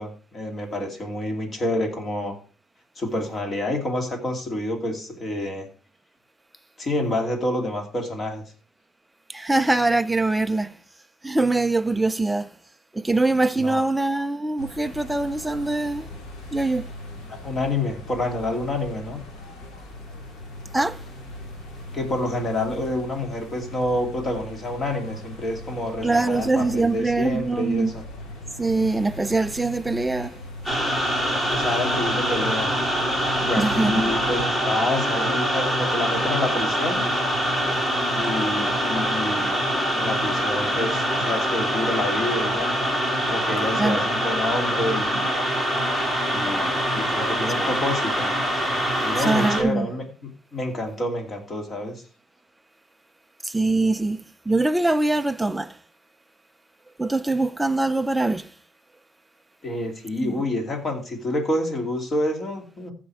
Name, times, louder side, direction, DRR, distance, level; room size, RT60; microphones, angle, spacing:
voice 1, 0.0-2.3 3.0-5.7 6.8-8.4 13.6-13.8 17.4-19.2 21.9-27.9 31.5-32.7 33.4-37.0 38.1-42.7 43.3-45.5 46.3-48.3 49.0-52.0 59.6-62.9, left 1 dB, 30° left, 2.8 m, -28 dB
voice 2, 9.3-10.7 11.2-12.5 12.9-16.1 16.5-16.9 20.7-21.0 26.0-27.9 28.6-30.4 33.6-34.0 43.7-44.0 49.2-49.9 53.4-55.8 57.0-58.5 60.2-60.4, right 2 dB, 10° right, 0.5 m, -23 dB
sound 1, 14.6-34.5, left 1 dB, 60° left, 2.7 m, -40 dB
sound 2, 30.7-49.6, equal, 15° left, 3.0 m, -24 dB
14.5 x 5.1 x 4.9 m
cardioid pair, 125°, 0 cm